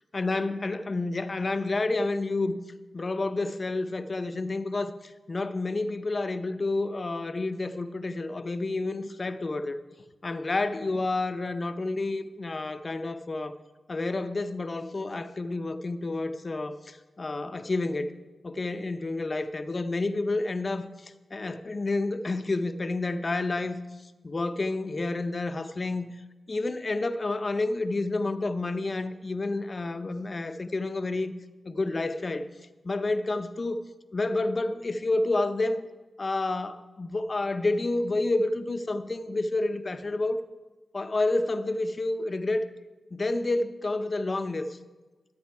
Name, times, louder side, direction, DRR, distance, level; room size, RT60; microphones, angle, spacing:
voice 1, 0.1-2.6 2.9-9.8 10.2-13.6 13.9-18.2 18.4-23.8 24.2-26.1 26.5-31.3 31.6-32.5 32.8-33.8 34.1-35.9 36.2-40.4 40.9-42.7 43.1-44.8, left 2 dB, 45° left, 0.7 m, -29 dB
13.0 x 8.6 x 4.7 m
cardioid pair, 45°, 0 cm